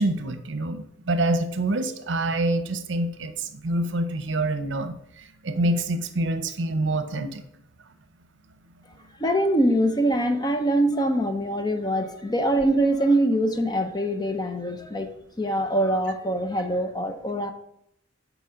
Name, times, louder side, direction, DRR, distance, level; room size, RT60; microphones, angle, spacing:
voice 1, 0.0-7.4, right 1 dB, 70° right, 10 dB, 0.7 m, -26 dB
voice 2, 9.2-15.1 15.4-17.5, right 1 dB, 20° left, 7 dB, 0.6 m, -23 dB
8.2 x 4.3 x 5.0 m, 0.74 s
head